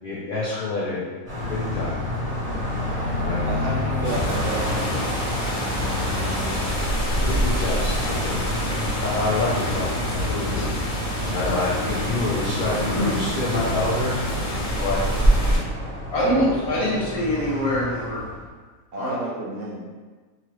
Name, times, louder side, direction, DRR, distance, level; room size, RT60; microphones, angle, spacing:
voice 1, 0.0-1.0 1.5-2.0 3.2-3.4 7.2-8.4 9.0-10.7 11.3-14.1 14.8-15.3, left 2 dB, 65° left, -8 dB, 0.5 m, -27 dB
Car passing by, 1.3-18.5, left 1 dB, 5° left, 0.8 m, -30 dB
voice 2, 3.4-5.1 18.9-19.8, right 2 dB, 65° right, -2 dB, 0.8 m, -31 dB
sound 1, 4.0-15.6, equal, 50° left, 0.9 m, -26 dB
voice 3, 16.1-18.2 18.9-19.2, equal, 85° left, -8 dB, 1.5 m, -24 dB
3.0 x 2.4 x 2.9 m, 1.4 s
omnidirectional pair, 1.5 m